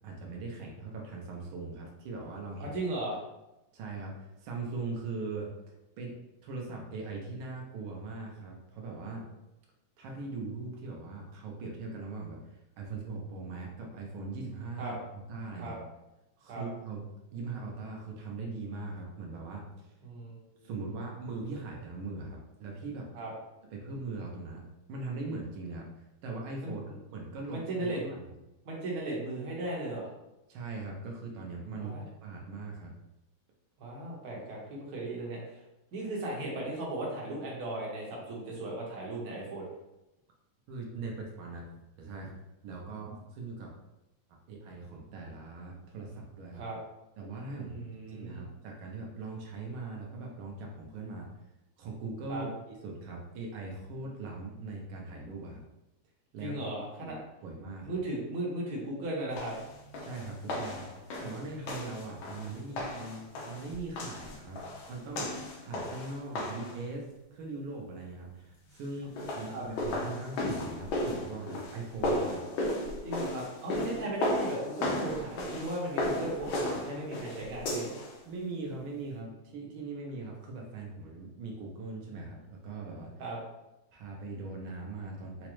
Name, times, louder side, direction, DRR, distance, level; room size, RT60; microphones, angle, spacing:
voice 1, 0.0-2.8 3.7-5.5 6.0-6.1 6.4-9.3 10.0-15.8 16.4-17.0 17.3-19.9 20.6-23.1 23.7-26.8 27.1-28.3 30.5-32.9 40.7-41.7 42.0-42.3 42.6-43.7 44.5-46.6 47.2-47.8 48.1-51.3 51.8-55.6 56.3-56.6 57.0-58.0 60.0-60.9 61.2-64.6 64.9-65.3 65.6-72.4 78.2-83.1 83.9-85.5, right 3 dB, 90° right, -1 dB, 1.5 m, -40 dB
voice 2, 2.6-3.2 14.8-15.0 15.6-15.8 16.5-16.6 20.0-20.7 23.1-23.3 26.6-26.7 27.5-28.1 28.6-30.1 31.8-32.0 33.8-35.6 35.9-39.6 46.5-46.8 47.6-48.4 52.3-52.4 56.4-57.2 57.8-59.5 69.5-69.7 73.0-77.9 83.2-83.4, right 2 dB, 55° right, -3 dB, 1.3 m, -36 dB
sound 1, 59.4-66.8 69.0-78.1, left 1 dB, 80° left, 1.4 m, -35 dB
4.8 x 2.0 x 3.0 m, 0.94 s
omnidirectional pair, 2.2 m